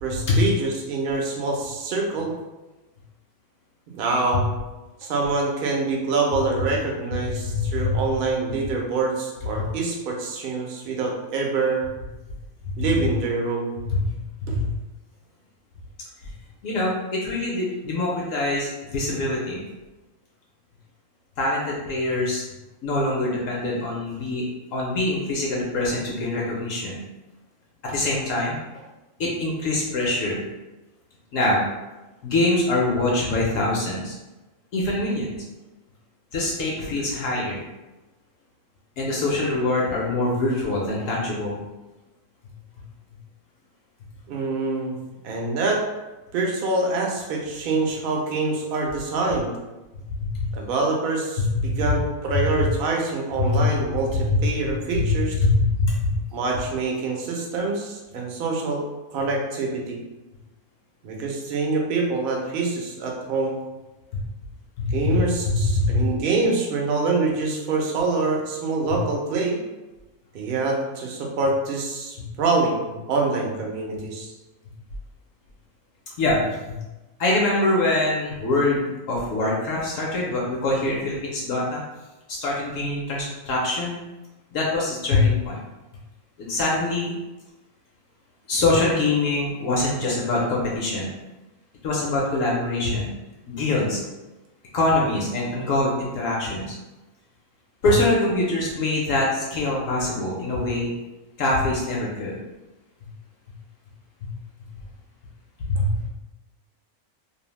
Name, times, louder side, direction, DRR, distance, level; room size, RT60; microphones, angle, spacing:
voice 1, 0.0-2.3 3.9-4.5 5.0-11.8 12.8-13.7 14.5-14.6 44.3-45.0 45.2-45.8 46.3-49.5 50.5-55.3 56.3-58.8 59.1-60.0 61.0-63.6 64.9-69.6 70.3-74.3, right 3 dB, 65° right, -1 dB, 0.5 m, -25 dB
voice 2, 7.2-8.0 13.0-13.1 13.9-14.1 14.4-14.7 16.6-19.6 21.4-22.4 22.8-24.4 24.7-27.0 27.8-28.6 29.2-30.4 31.3-31.6 32.2-34.1 34.7-35.3 36.3-37.6 39.0-41.6 50.2-50.5 51.6-51.8 52.3-52.4 53.4-53.6 54.1-54.4 54.9-56.1 64.1-64.2 64.8-65.2 65.5-66.1 76.2-76.8 77.2-81.8 82.3-84.0 84.5-85.6 86.4-87.1 88.5-91.1 91.8-93.1 93.5-94.0 94.7-96.7 97.8-100.9 101.4-102.4 105.6-106.1, left 2 dB, 70° left, -3 dB, 0.9 m, -24 dB
2.6 x 2.0 x 3.0 m, 1.1 s
omnidirectional pair, 1.6 m